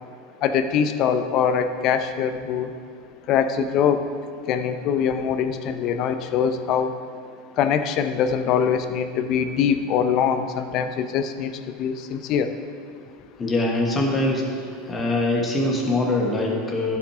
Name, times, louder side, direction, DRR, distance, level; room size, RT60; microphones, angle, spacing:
voice 1, 0.4-2.7 3.3-4.0 4.5-6.9 7.6-11.5 11.8-12.5, left 7 dB, 50° left, 9 dB, 0.7 m, -23 dB
voice 2, 13.4-17.0, left 2 dB, 20° left, -1 dB, 1.4 m, -23 dB
11.5 x 5.9 x 4.8 m, 2.2 s
hypercardioid pair, 105°, 0 cm